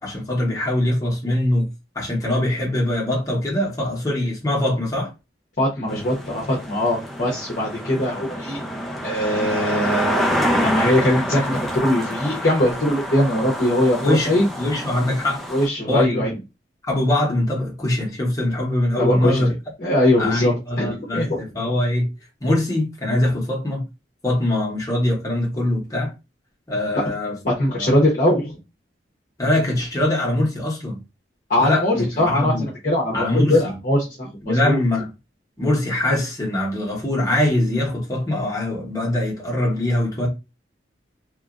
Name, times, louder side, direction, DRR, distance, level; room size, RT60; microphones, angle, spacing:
voice 1, 0.0-1.7 1.9-5.1 14.0-15.4 15.9-16.2 16.9-19.5 20.2-22.1 22.4-23.9 24.2-26.1 26.7-27.4 27.7-27.9 29.4-31.0 31.6-32.6 33.1-33.7 34.4-35.1 35.6-40.3, left 1 dB, 20° left, 1.0 m, -22 dB
voice 2, 5.6-8.6 9.0-14.5 15.5-16.3 19.0-19.4 19.8-21.4 27.4-28.6 31.5-34.8, left 1 dB, 45° left, 0.8 m, -21 dB
sound 1, 5.9-15.7, equal, ahead, 0.5 m, -27 dB
2.9 x 2.4 x 2.4 m
head